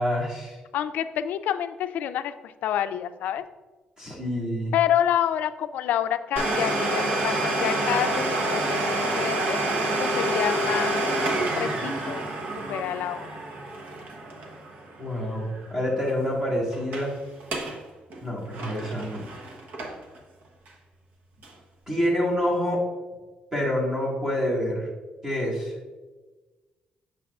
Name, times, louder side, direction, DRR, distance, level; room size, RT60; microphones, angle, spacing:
voice 1, 0.0-0.6 4.0-4.7 15.0-17.1 18.2-19.3 21.9-22.8 23.5-24.9 25.2-25.7, equal, 20° right, -4 dB, 1.8 m, -27 dB
voice 2, 0.7-3.4 4.7-9.6 10.0-11.1 11.6-12.2 12.7-13.4, left 10 dB, 80° left, 11 dB, 0.3 m, -28 dB
Domestic sounds home sounds, 6.4-15.8 16.0-16.1 16.7-17.1 17.4-17.8 18.1-20.2 20.7-20.8 21.4-21.5, right 1 dB, 70° right, 0.9 m, -27 dB
7.2 x 6.6 x 2.4 m, 1.3 s
cardioid pair, 170°, 3 cm